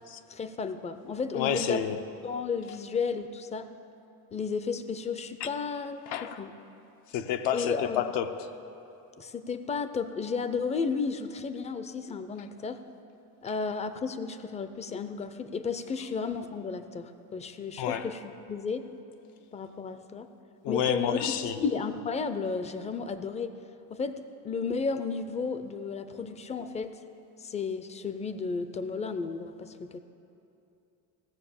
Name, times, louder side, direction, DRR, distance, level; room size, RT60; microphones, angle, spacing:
voice 1, 0.3-3.7 4.3-6.0 6.4-6.5 7.5-8.0 9.2-12.8 13.4-18.9 19.5-20.3 20.7-23.6 23.9-27.0 27.4-30.0, left 5 dB, 20° left, 11 dB, 0.4 m, -33 dB
voice 2, 1.3-2.0 5.4-5.5 6.1-6.4 7.1-8.3 17.8-18.1 20.6-21.6, left 9 dB, 85° left, 8 dB, 0.8 m, -29 dB
16.0 x 7.1 x 7.0 m, 2.8 s
cardioid pair, 145°, 41 cm